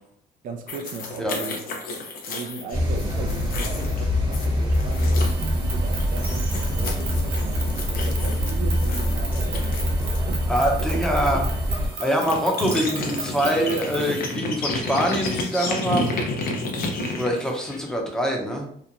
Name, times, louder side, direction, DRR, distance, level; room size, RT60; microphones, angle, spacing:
voice 1, 0.4-1.6 2.3-10.4 10.8-11.4 15.8-16.2 16.6-17.1, right 4 dB, 50° right, 0.4 m, -38 dB
Slurp sounds, 0.7-5.5 5.9-10.2 11.7-11.8 12.0-18.0, left 2 dB, 60° left, 0.6 m, -31 dB
sound 1, 2.7-11.9, equal, 25° right, 0.9 m, -24 dB
sound 2, 5.1-14.3, right 4 dB, 75° right, 0.8 m, -37 dB
voice 2, 10.5-11.4 11.9-16.2 17.2-18.9, equal, 5° left, 0.6 m, -24 dB
2.9 x 2.1 x 2.5 m
cardioid pair, 110°, 17 cm